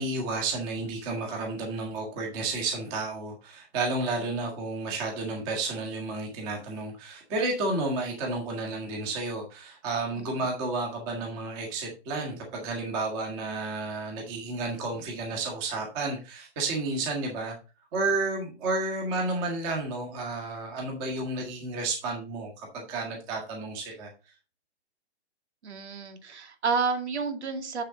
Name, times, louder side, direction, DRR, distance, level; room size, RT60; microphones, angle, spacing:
voice 1, 0.0-17.5 17.9-24.1, right 3 dB, 15° right, 0 dB, 1.6 m, -31 dB
voice 2, 25.6-27.8, right 5 dB, 90° right, 5 dB, 2.3 m, -30 dB
7.6 x 6.7 x 3.9 m, 0.31 s
hypercardioid pair, 175°, 32 cm